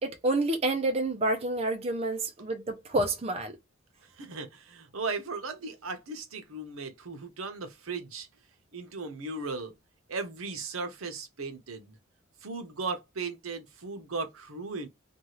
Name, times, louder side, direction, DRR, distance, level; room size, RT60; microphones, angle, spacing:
voice 1, 0.0-3.6, right 2 dB, 30° right, 0.5 m, -28 dB
voice 2, 4.0-8.3 8.7-9.7 10.1-12.0 12.4-14.9, right 4 dB, 75° right, 0.8 m, -37 dB
2.7 x 2.3 x 3.0 m
head